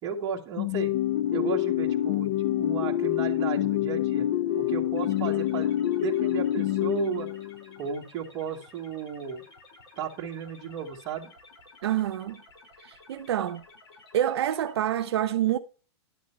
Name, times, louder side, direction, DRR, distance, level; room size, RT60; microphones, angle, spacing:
voice 1, 0.0-1.0 1.3-4.3 4.6-7.3 7.8-9.4 10.0-11.3, right 7 dB, 25° right, 2.0 m, -34 dB
sound 1, 0.6-7.7, left 12 dB, 40° left, 0.4 m, -26 dB
sound 2, 4.9-14.7, left 3 dB, 60° left, 5.1 m, -53 dB
voice 2, 11.8-12.4 12.8-13.6 14.1-15.6, right 11 dB, 65° right, 0.8 m, -27 dB
11.5 x 6.4 x 4.5 m
hypercardioid pair, 160°, 15 cm